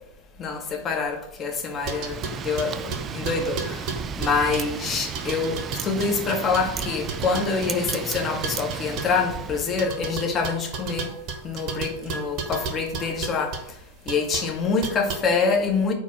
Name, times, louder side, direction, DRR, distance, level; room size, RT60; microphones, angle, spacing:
voice 1, 0.4-11.1 11.4-13.8 14.0-15.9, left 4 dB, 25° left, 1.1 m, -26 dB
Wind, 1.7-9.9, right 7 dB, 25° right, 0.3 m, -34 dB
sound 1, 1.9-4.8 5.1-9.2 9.8-13.6 14.1-14.5 14.8-15.2, right 4 dB, 40° right, 1.0 m, -33 dB
4.5 x 4.5 x 5.9 m
figure-of-eight pair, 90°, 0 cm